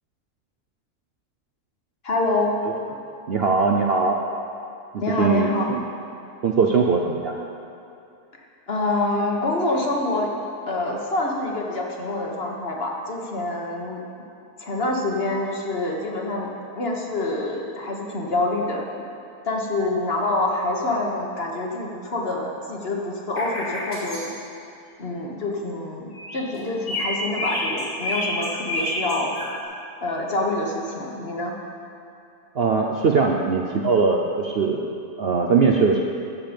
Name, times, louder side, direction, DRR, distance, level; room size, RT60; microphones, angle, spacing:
voice 1, 2.0-2.6 5.0-5.6 8.7-10.3 10.7-14.0 14.6-16.5 16.7-18.8 19.4-24.3 25.0-29.4 30.0-31.5, left 2 dB, 45° left, 0 dB, 1.3 m, -26 dB
voice 2, 3.3-4.2 4.9-5.8 6.4-7.4 32.6-36.0, right 4 dB, 55° right, 1 dB, 0.7 m, -21 dB
sound 1, 23.4-24.2 26.1-26.6 26.9-29.5, left 1 dB, 80° left, 3.5 m, -28 dB
13.5 x 7.5 x 5.2 m, 2.6 s
omnidirectional pair, 1.6 m